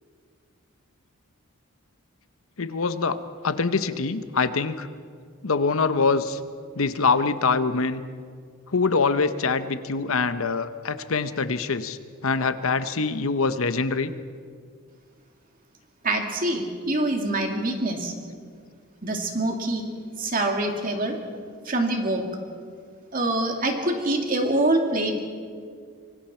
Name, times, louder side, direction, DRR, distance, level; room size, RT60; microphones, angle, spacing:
voice 1, 2.6-4.9 5.4-6.4 6.8-8.0 8.7-14.1, left 4 dB, 70° left, 11 dB, 0.8 m, -24 dB
voice 2, 16.0-18.1 19.0-19.8 20.2-21.2 21.7-22.2 23.1-25.2, right 1 dB, 40° right, 2 dB, 2.5 m, -25 dB
25.0 x 24.0 x 4.4 m, 2.1 s
head